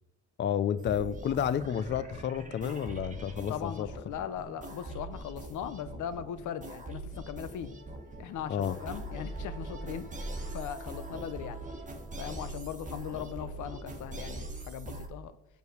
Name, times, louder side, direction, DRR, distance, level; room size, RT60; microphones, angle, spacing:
voice 1, 0.4-3.9 8.5-8.8, left 9 dB, 40° left, 0.4 m, -31 dB
sound 1, 0.8-15.1, right 2 dB, 25° right, 1.4 m, -42 dB
voice 2, 3.5-7.7 8.2-11.6 12.2-15.3, left 9 dB, 80° left, 0.8 m, -39 dB
6.4 x 5.4 x 6.3 m
cardioid pair, 90°, 30 cm